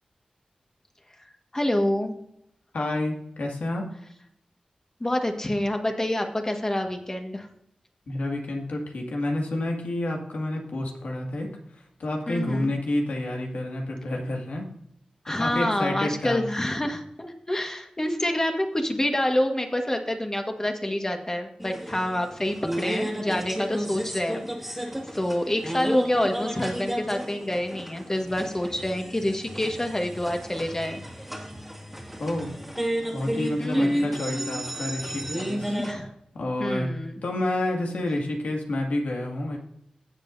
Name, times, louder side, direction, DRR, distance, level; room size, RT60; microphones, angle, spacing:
voice 1, 1.5-2.2 5.0-7.5 12.3-12.7 15.2-31.0 33.6-34.1 35.7-36.1 36.6-37.1, left 1 dB, 25° left, 4 dB, 1.6 m, -27 dB
voice 2, 2.7-3.9 8.1-14.7 15.4-16.4 32.2-32.5 33.1-35.8 36.3-36.9 37.2-39.6, left 1 dB, 90° left, 1 dB, 2.2 m, -29 dB
sound 1, 21.6-35.9, equal, 5° right, 2.0 m, -32 dB
16.0 x 7.4 x 2.7 m, 0.74 s
wide cardioid pair, 80°, 2 cm